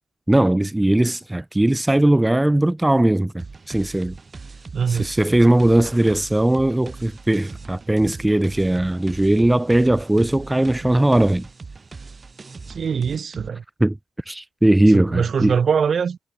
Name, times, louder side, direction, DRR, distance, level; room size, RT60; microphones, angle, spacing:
voice 1, 0.3-4.2 4.9-11.5 13.8-14.0 14.3-15.5, right 1 dB, 10° right, 0.4 m, -19 dB
sound 1, 3.4-13.5, right 4 dB, 30° right, 1.3 m, -40 dB
voice 2, 4.7-5.1 12.7-13.6 14.9-16.2, right 6 dB, 45° right, 0.6 m, -22 dB
cardioid pair, 90°, 0 cm